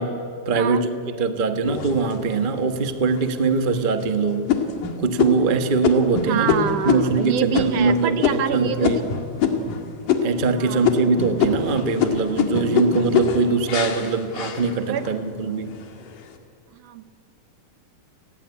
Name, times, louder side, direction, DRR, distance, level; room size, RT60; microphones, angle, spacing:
voice 1, 0.0-4.5 5.0-9.0 10.2-15.7, right 4 dB, 90° right, 8 dB, 0.4 m, -22 dB
sound 1, 1.7-2.5 3.1-3.2 3.7-4.0 4.5-9.8 10.1-10.6 10.8-15.2 15.6-16.2, left 6 dB, 85° left, 3.6 m, -24 dB
voice 2, 6.2-9.0 10.6-11.0 14.9-15.1 16.7-17.0, right 9 dB, 65° right, 11 dB, 1.8 m, -27 dB
30.0 x 20.0 x 9.9 m, 2.4 s
omnidirectional pair, 3.6 m